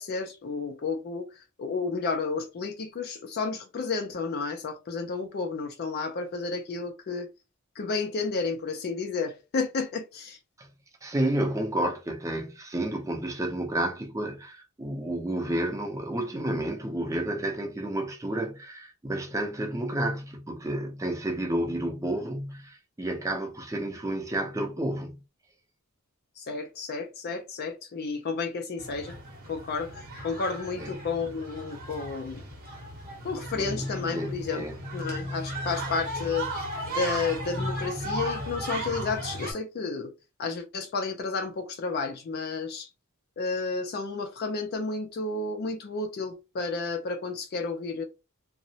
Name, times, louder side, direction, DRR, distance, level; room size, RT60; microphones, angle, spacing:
voice 1, 0.0-7.3 7.8-10.4 26.4-29.2 29.5-32.4 33.2-34.6 34.9-36.5 36.9-40.1 40.4-42.9 43.4-48.0, left 4 dB, 45° left, 0.4 m, -31 dB
voice 2, 11.0-25.2 30.8-31.1 33.6-34.7, right 1 dB, 15° right, 0.5 m, -31 dB
sound 1, 28.8-39.5, right 1 dB, 40° right, 0.9 m, -35 dB
2.8 x 2.0 x 2.7 m
head